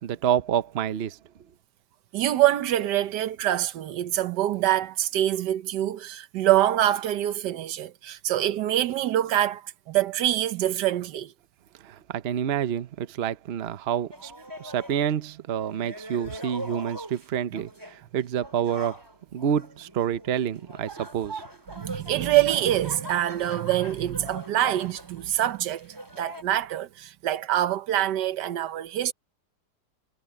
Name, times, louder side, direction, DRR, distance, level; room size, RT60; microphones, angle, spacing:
voice 1, 0.0-1.2 11.8-14.3 14.6-19.0 19.3-21.4, right 9 dB, 50° right, 0.8 m, -28 dB
voice 2, 2.1-11.3 21.7-29.1, right 13 dB, 80° right, 1.4 m, -25 dB
sound 1, 14.1-15.2 15.5-17.3 17.5-18.0 18.4-26.4, equal, 15° right, 3.1 m, -41 dB
omnidirectional pair, 1.8 m